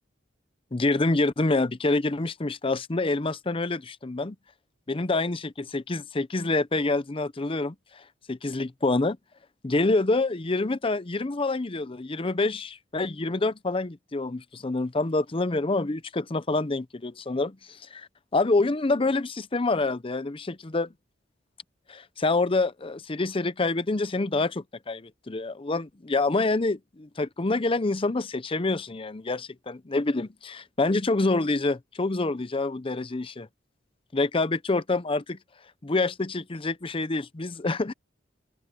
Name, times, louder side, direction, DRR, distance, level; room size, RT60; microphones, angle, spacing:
voice 1, 0.7-4.4 4.9-8.0 8.3-9.2 9.6-20.9 21.9-33.5 34.1-35.4 35.8-37.9, left 2 dB, 30° left, 0.7 m, -27 dB
open air
head